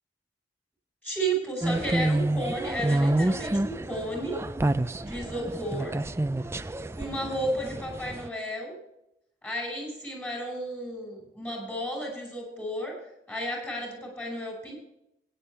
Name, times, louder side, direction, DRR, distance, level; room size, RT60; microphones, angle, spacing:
voice 1, 1.0-4.4 5.0-5.9 6.9-8.8 9.4-13.0 13.3-14.7, right 1 dB, 10° left, 0 dB, 5.9 m, -33 dB
sound 1, 1.6-8.3, right 1 dB, 15° right, 0.4 m, -28 dB
17.0 x 10.5 x 3.3 m, 0.81 s
head